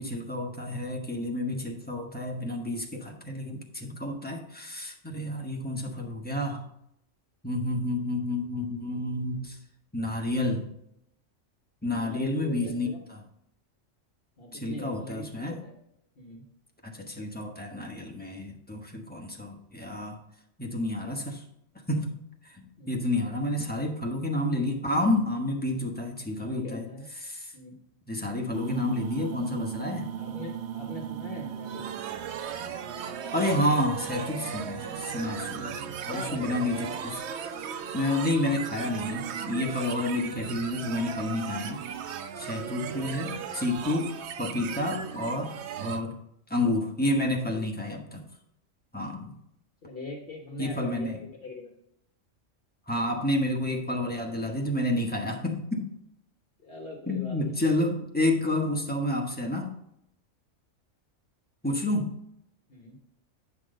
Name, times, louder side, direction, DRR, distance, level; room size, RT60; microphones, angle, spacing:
voice 1, 0.0-6.6 7.4-9.6 9.9-10.7 11.8-12.9 14.5-15.6 16.8-20.2 20.6-21.4 21.9-22.2 22.5-26.9 27.3-27.4 28.1-30.1 33.3-37.2 37.9-41.8 42.4-46.2 46.5-48.2 48.9-49.3 50.6-51.1 52.9-55.9 57.1-59.8 61.6-62.2, left 1 dB, 10° left, 1 dB, 1.0 m, -30 dB
voice 2, 11.9-13.0 14.4-15.7 16.2-16.4 22.8-23.0 26.4-27.1 27.5-27.8 30.2-31.9 35.5-35.7 36.0-36.6 42.5-43.1 47.4-47.7 49.8-51.7 55.2-55.3 56.6-57.6 62.7-63.0, left 2 dB, 50° left, 1 dB, 1.2 m, -42 dB
sound 1, 28.5-46.0, right 8 dB, 65° right, 0.8 m, -37 dB
9.3 x 6.0 x 3.8 m, 0.76 s
omnidirectional pair, 1.3 m